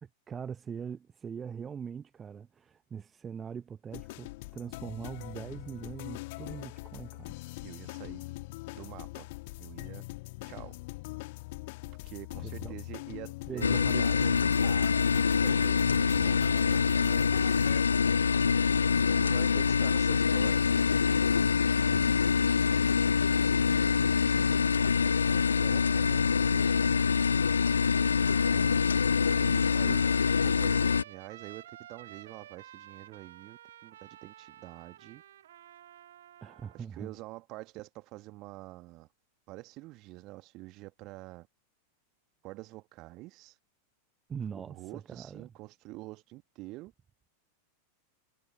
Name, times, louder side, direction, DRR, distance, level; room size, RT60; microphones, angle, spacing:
voice 1, 0.0-7.3 12.4-12.7 13.5-14.5 21.9-22.2 28.5-28.8 29.8-30.0 36.4-37.1 44.3-45.5, right 7 dB, 20° right, 1.0 m, -42 dB
sound 1, 3.9-17.8, left 22 dB, 50° left, 2.0 m, -42 dB
voice 2, 7.6-8.2 8.7-9.3 9.6-10.0 10.5-10.8 12.0-14.2 14.6-17.3 19.0-20.8 23.5-26.7 29.3-30.0 30.4-35.2 36.7-39.1 39.5-41.5 42.4-43.6 44.5-46.9, right 20 dB, 40° right, 1.9 m, -47 dB
sound 2, 13.6-31.0, left 6 dB, 75° left, 0.3 m, -25 dB
Trumpet, 28.0-36.8, right 11 dB, 60° right, 2.4 m, -52 dB
figure-of-eight pair, 90°, 0 cm